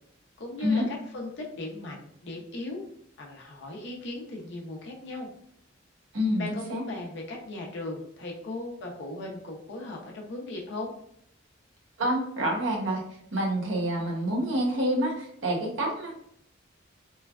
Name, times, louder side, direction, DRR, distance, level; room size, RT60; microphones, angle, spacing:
voice 1, 0.4-2.8 3.2-5.3 6.4-10.9, left 2 dB, 65° left, 0 dB, 0.5 m, -37 dB
voice 2, 6.1-6.8 12.0-13.0 13.3-16.1, equal, 75° right, -1 dB, 0.7 m, -27 dB
3.1 x 2.3 x 2.2 m, 0.70 s
head